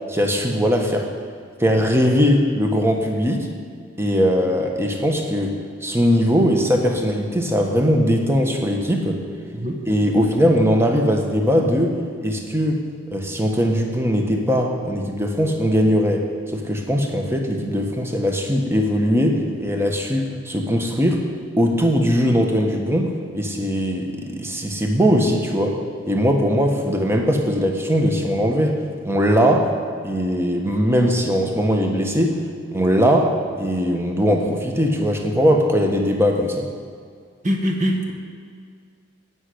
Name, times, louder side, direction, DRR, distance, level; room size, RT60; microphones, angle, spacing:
voice 1, 0.1-1.1 1.6-3.5 4.0-9.2 9.9-12.0 12.2-12.8 13.1-21.2 21.6-25.8 26.1-28.8 29.0-29.7 30.0-32.4 32.7-33.3 33.6-36.7, equal, 10° right, 2 dB, 1.3 m, -20 dB
voice 2, 37.4-38.1, equal, 35° right, 1 dB, 1.5 m, -22 dB
16.0 x 6.4 x 8.6 m, 2.1 s
head